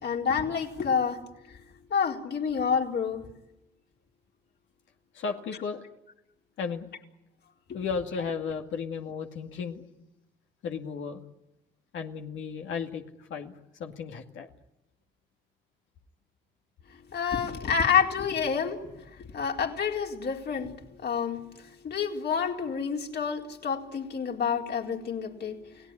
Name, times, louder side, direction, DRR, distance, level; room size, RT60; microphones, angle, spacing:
voice 1, 0.0-1.2 1.5-1.6 1.9-3.2 17.1-20.8 21.0-25.9, left 7 dB, 60° left, 2 dB, 4.2 m, -29 dB
voice 2, 5.1-5.9 6.6-6.9 7.7-9.8 10.6-11.2 11.9-14.5, left 5 dB, 75° left, 3 dB, 2.2 m, -34 dB
29.5 x 18.0 x 10.0 m, 0.94 s
cardioid pair, 90°, 20 cm